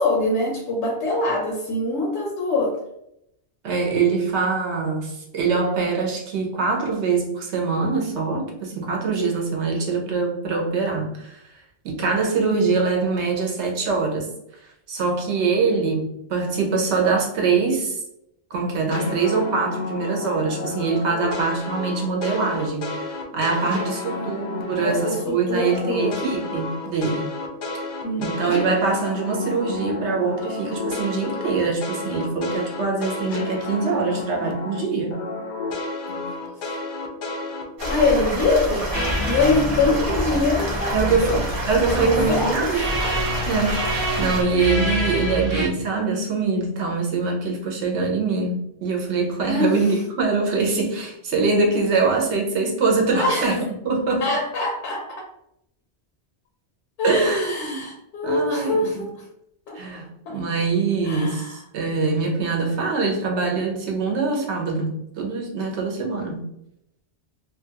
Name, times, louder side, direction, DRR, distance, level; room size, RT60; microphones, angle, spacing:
voice 1, 0.0-2.8 15.5-15.6 23.7-24.3 24.8-26.2 28.0-28.7 36.1-36.4 37.9-38.9 39.2-41.4 41.9-42.7 49.5-49.8 53.1-53.5 54.2-55.3 57.0-59.1 59.7-59.8 60.3-60.4 61.0-61.6, left 2 dB, 80° left, 0 dB, 0.9 m, -24 dB
voice 2, 3.6-14.3 14.6-18.0 18.5-23.0 23.3-27.3 28.2-35.2 40.9-41.4 41.7-42.8 43.5-54.2 57.0-57.9 58.2-59.1 59.7-66.4, right 4 dB, 75° right, 0 dB, 1.0 m, -23 dB
sound 1, 18.9-25.2 25.5-34.8 35.1-38.1, left 3 dB, 60° left, 0.5 m, -31 dB
sound 2, 37.8-44.4, right 1 dB, 50° right, 1.0 m, -28 dB
sound 3, 38.9-45.7, equal, 35° right, 0.5 m, -27 dB
2.7 x 2.4 x 2.8 m, 0.78 s
omnidirectional pair, 1.2 m